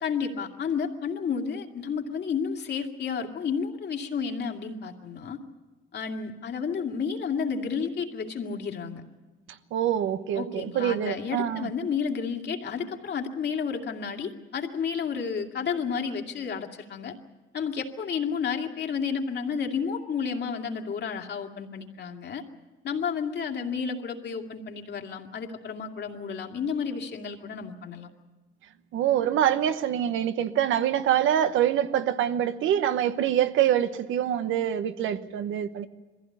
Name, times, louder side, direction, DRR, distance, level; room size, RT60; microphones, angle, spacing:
voice 1, 0.0-5.4 5.9-9.0 10.3-17.1 17.5-22.4 22.8-28.1, left 6 dB, 60° left, 2.4 m, -31 dB
voice 2, 9.7-11.7 28.9-35.9, right 10 dB, 85° right, 1.1 m, -25 dB
22.0 x 15.5 x 9.6 m
cardioid pair, 90°, 20 cm